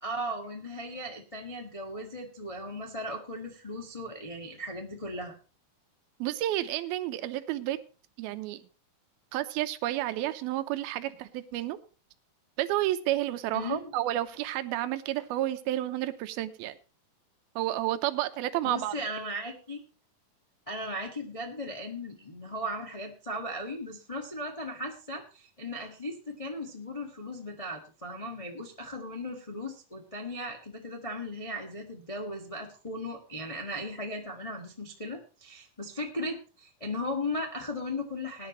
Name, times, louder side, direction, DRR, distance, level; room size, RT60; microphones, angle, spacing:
voice 1, 0.0-5.3 13.5-13.9 18.6-19.8 20.7-38.5, left 1 dB, 70° left, 0 dB, 0.3 m, -37 dB
voice 2, 6.2-7.8 8.2-8.7 9.3-11.8 12.6-16.8 17.6-19.0, right 14 dB, 85° right, 10 dB, 2.7 m, -31 dB
19.5 x 10.5 x 3.1 m, 0.34 s
omnidirectional pair, 4.3 m